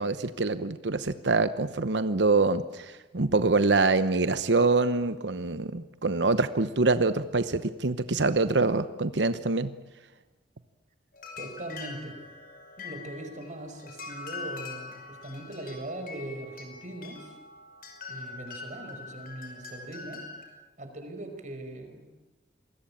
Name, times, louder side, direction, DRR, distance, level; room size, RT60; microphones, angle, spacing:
voice 1, 0.0-9.7, right 3 dB, 90° right, 12 dB, 1.0 m, -25 dB
sound 1, 11.1-20.4, left 4 dB, 55° left, 5.8 m, -43 dB
voice 2, 11.4-12.2 12.8-17.4 18.1-20.3 20.8-22.0, right 1 dB, 45° right, 6 dB, 5.2 m, -40 dB
27.5 x 21.0 x 8.7 m, 1.1 s
head